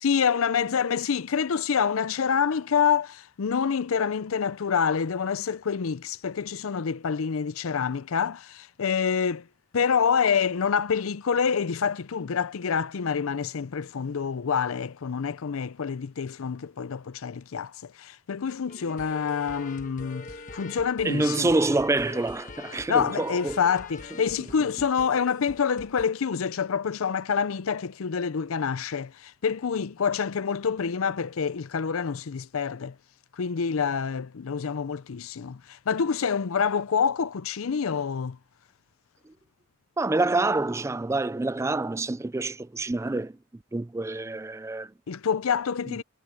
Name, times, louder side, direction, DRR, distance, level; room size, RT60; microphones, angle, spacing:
voice 1, 0.0-9.5 9.7-21.5 22.9-33.0 33.4-38.4 45.1-46.0, left 6 dB, 90° left, 0.5 m, -27 dB
sound 1, 18.7-26.1, left 3 dB, 40° left, 1.3 m, -43 dB
voice 2, 21.0-23.6 40.0-43.3 43.7-44.9, right 2 dB, 15° right, 0.3 m, -26 dB
head